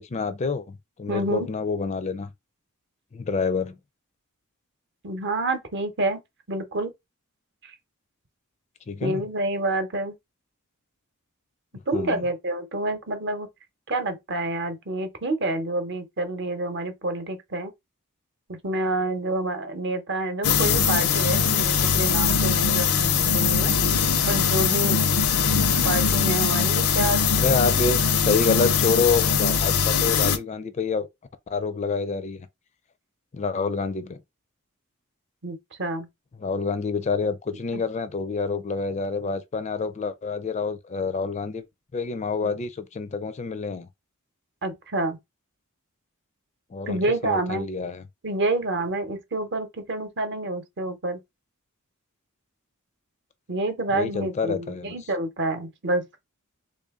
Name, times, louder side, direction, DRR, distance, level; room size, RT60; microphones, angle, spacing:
voice 1, 0.0-2.3 3.1-3.8 8.9-9.2 11.9-12.2 25.4-25.9 27.3-31.1 31.5-32.5 33.3-34.2 36.4-41.6 41.9-43.9 46.7-48.0 53.9-54.9, left 4 dB, 30° left, 0.4 m, -27 dB
voice 2, 1.1-1.5 5.0-6.2 6.5-6.9 7.6-7.7 9.0-10.2 11.9-13.5 13.9-17.7 18.5-23.7 24.2-25.0 25.8-27.5 35.4-36.1 37.7-37.8 42.4-42.6 44.6-45.2 46.9-47.7 48.2-51.2 53.5-56.1, right 2 dB, 55° right, 0.8 m, -28 dB
sound 1, 20.4-30.4, left 6 dB, 80° left, 0.6 m, -21 dB
3.4 x 2.5 x 3.6 m
head